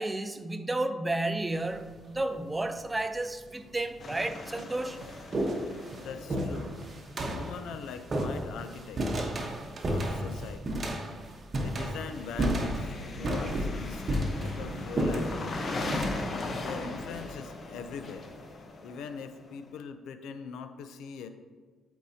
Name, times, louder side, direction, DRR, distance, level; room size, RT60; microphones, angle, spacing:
voice 1, 0.0-5.0, right 2 dB, 15° right, 10 dB, 0.5 m, -32 dB
sound 1, 1.5-2.0 2.9-3.0 3.9-4.0 4.3-17.9, right 1 dB, 40° right, 1.1 m, -33 dB
sound 2, 4.0-7.9 12.0-19.7, left 2 dB, 45° left, 0.9 m, -39 dB
sound 3, 4.1-4.3 4.6-4.7 5.0-5.2 5.5-5.6 5.9-6.1 6.4-6.5 6.8-7.0 7.3-7.4 7.7-8.3 8.6-8.8 9.1-9.2 9.5-10.1 10.4-10.6 10.9-11.0, right 5 dB, 55° right, 0.6 m, -48 dB
voice 2, 6.0-6.8 7.3-9.3 9.9-10.8 11.6-15.6 16.6-18.3 18.8-21.3, left 6 dB, 85° left, 9 dB, 0.5 m, -42 dB
12.5 x 4.6 x 2.8 m, 1.5 s
cardioid pair, 90°, 0 cm